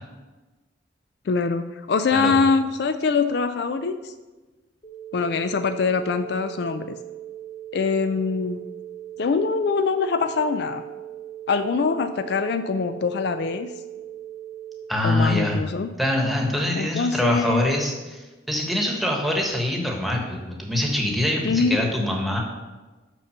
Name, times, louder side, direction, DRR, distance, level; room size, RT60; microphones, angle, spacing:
voice 1, 1.3-4.1 5.1-7.0 7.7-8.6 9.2-10.8 11.5-13.7 15.0-15.9 16.8-17.7 21.4-21.8, left 4 dB, 60° left, 10 dB, 0.4 m, -23 dB
sound 1, 4.8-14.8, right 12 dB, 40° left, 1.0 m, -39 dB
voice 2, 14.9-15.6 16.0-22.4, left 1 dB, ahead, 0 dB, 1.2 m, -24 dB
6.0 x 5.9 x 6.6 m, 1.2 s
head